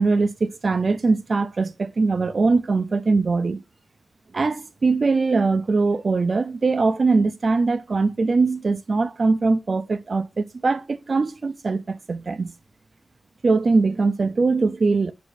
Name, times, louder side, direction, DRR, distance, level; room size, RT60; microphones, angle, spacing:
voice 1, 0.0-3.6 4.3-12.5 13.4-15.1, right 3 dB, 50° right, 0.6 m, -21 dB
9.9 x 5.2 x 2.6 m
wide cardioid pair, 110°, 0 cm